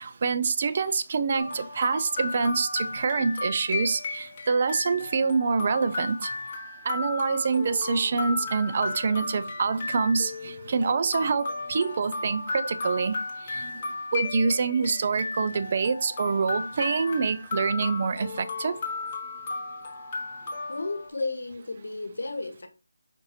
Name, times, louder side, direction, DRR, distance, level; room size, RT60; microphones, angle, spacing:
voice 1, 0.0-6.3 6.9-13.2 13.5-13.8 14.1-18.8, right 4 dB, 40° right, 0.4 m, -26 dB
sound 1, 1.4-21.1, left 3 dB, 25° left, 0.9 m, -35 dB
voice 2, 20.7-22.7, left 3 dB, 70° left, 1.1 m, -33 dB
5.1 x 2.7 x 3.1 m
figure-of-eight pair, 165°, 0 cm